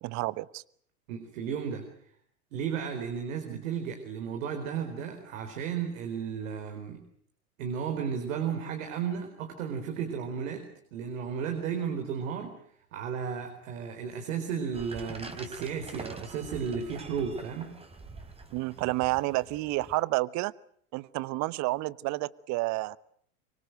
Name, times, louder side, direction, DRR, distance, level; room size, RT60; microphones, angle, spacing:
voice 1, 0.0-0.6 3.5-3.6 18.5-20.5 20.9-23.0, right 20 dB, 40° right, 20 dB, 1.0 m, -30 dB
voice 2, 1.1-1.8 2.5-7.0 7.6-12.6 12.9-17.7, right 7 dB, 60° right, 5 dB, 4.4 m, -34 dB
sound 1, 14.7-20.0, right 3 dB, 15° right, 3.7 m, -45 dB
24.5 x 24.0 x 8.1 m, 0.64 s
hypercardioid pair, 95°, 44 cm